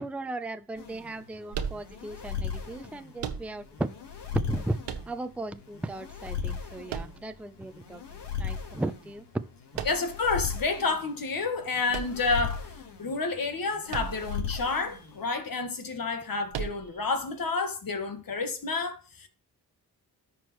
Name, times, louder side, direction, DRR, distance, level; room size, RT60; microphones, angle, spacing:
voice 1, 0.0-4.0 4.3-4.8 5.1-9.3 9.7-9.9, right 2 dB, 5° right, 0.5 m, -36 dB
sound 1, 0.8-15.3, left 6 dB, 80° left, 1.6 m, -38 dB
sound 2, 1.5-2.3 3.2-3.9 4.8-5.6 6.9-7.7 9.7-10.3 11.9-12.8 13.9-14.5 14.7-14.8 16.5-17.1, right 7 dB, 85° right, 1.0 m, -36 dB
voice 2, 9.8-12.7 13.0-19.3, left 4 dB, 55° left, 1.7 m, -30 dB
13.5 x 4.5 x 3.1 m
supercardioid pair, 50°, 41 cm